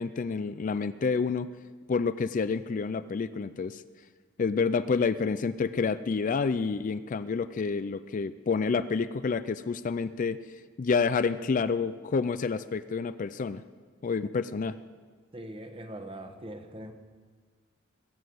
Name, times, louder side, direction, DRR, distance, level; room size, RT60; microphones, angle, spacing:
voice 1, 0.0-1.5 1.9-3.8 4.4-10.4 10.8-13.6 14.0-14.7, left 5 dB, 40° left, 13 dB, 0.4 m, -28 dB
voice 2, 15.3-16.9, right 1 dB, 25° right, 6 dB, 1.2 m, -41 dB
21.0 x 7.3 x 7.8 m, 1.5 s
head